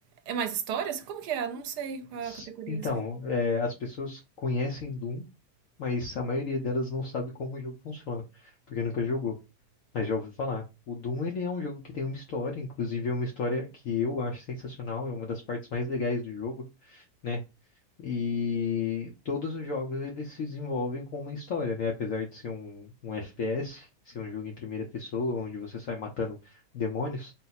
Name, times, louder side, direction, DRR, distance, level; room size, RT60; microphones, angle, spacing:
voice 1, 0.3-2.9, right 7 dB, 75° right, 1.2 m, -33 dB
voice 2, 2.2-5.2 5.8-9.4 9.9-17.4 18.0-27.3, left 4 dB, 60° left, 1.0 m, -32 dB
3.9 x 2.0 x 4.1 m
omnidirectional pair, 1.8 m